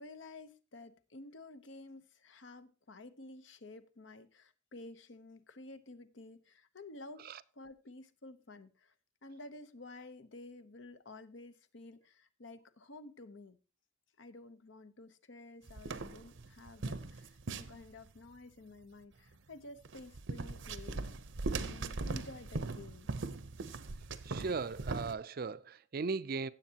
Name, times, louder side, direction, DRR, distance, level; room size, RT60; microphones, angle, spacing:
voice 1, 0.0-7.3 7.6-8.9 9.2-13.6 14.2-21.0 21.6-23.1, left 2 dB, 70° left, 0.9 m, -52 dB
sound 1, 15.7-18.2 19.9-25.2, right 3 dB, 75° right, 0.8 m, -40 dB
voice 2, 24.2-26.5, right 4 dB, 50° right, 0.4 m, -37 dB
16.5 x 7.4 x 2.9 m
head